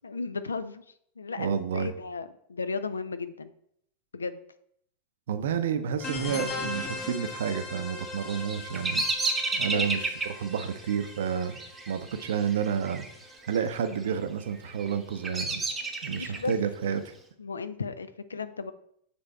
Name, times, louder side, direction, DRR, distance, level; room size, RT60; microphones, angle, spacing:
voice 1, 0.0-0.8 1.2-3.5 4.1-4.4 5.6-5.7 9.5-9.9 16.0-16.6 17.4-18.7, left 4 dB, 75° left, 13 dB, 0.4 m, -35 dB
voice 2, 1.4-1.9 5.3-9.0 9.6-11.6 11.9-13.1 13.4-15.6 16.0-17.1, right 7 dB, 60° right, 9 dB, 0.6 m, -30 dB
sound 1, 6.0-13.3, left 3 dB, 30° left, 1.2 m, -39 dB
Bird vocalization bird call bird song, 8.1-13.1 13.4-14.0 14.5-16.5, right 3 dB, 15° right, 0.8 m, -32 dB
7.0 x 3.4 x 4.4 m, 0.69 s
figure-of-eight pair, 90°, 0 cm